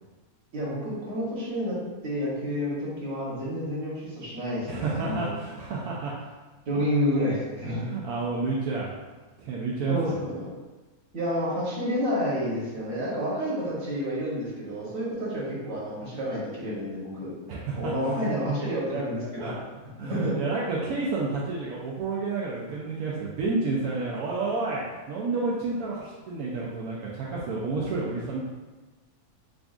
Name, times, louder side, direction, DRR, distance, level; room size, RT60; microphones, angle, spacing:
voice 1, 0.5-1.8 2.0-5.3 6.7-7.8 9.9-10.5 11.1-17.3 17.7-19.5 20.1-20.3, equal, 70° right, -6 dB, 1.5 m, -29 dB
voice 2, 4.7-6.1 7.6-8.9 9.4-10.2 17.5-18.3 19.4-19.5 20.0-28.4, right 3 dB, 85° right, -5 dB, 1.1 m, -30 dB
3.8 x 3.4 x 2.4 m, 1.2 s
omnidirectional pair, 1.5 m